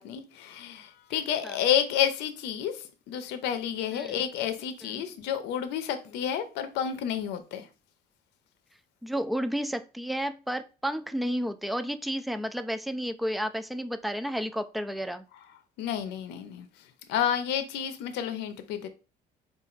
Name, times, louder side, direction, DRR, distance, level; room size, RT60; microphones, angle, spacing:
voice 1, 0.0-2.8 3.1-7.7 15.8-16.7 17.1-18.9, left 9 dB, 90° left, 0.6 m, -30 dB
voice 2, 3.9-4.2 4.8-5.0 9.0-15.3, equal, ahead, 0.4 m, -32 dB
4.2 x 2.5 x 3.8 m
cardioid pair, 110°, 17 cm